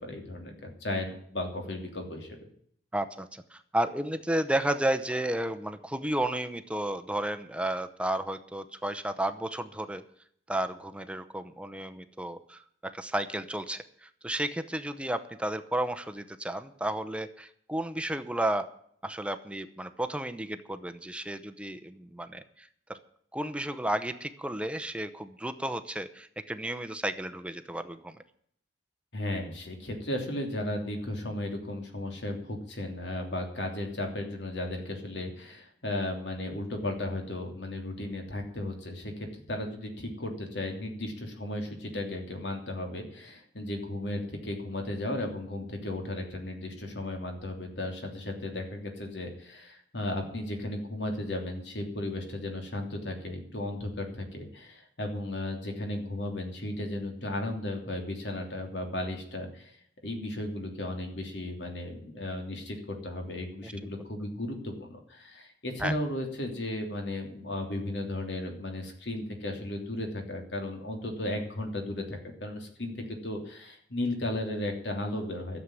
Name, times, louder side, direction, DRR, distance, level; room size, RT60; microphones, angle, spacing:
voice 1, 0.0-2.5 29.1-59.8 60.0-75.6, left 1 dB, 75° left, 3 dB, 3.1 m, -35 dB
voice 2, 2.9-10.0 10.5-18.7 19.0-23.0 23.3-28.2 63.6-63.7 65.8-65.9, right 1 dB, 5° right, 10 dB, 0.7 m, -32 dB
13.0 x 7.5 x 9.8 m, 0.65 s
head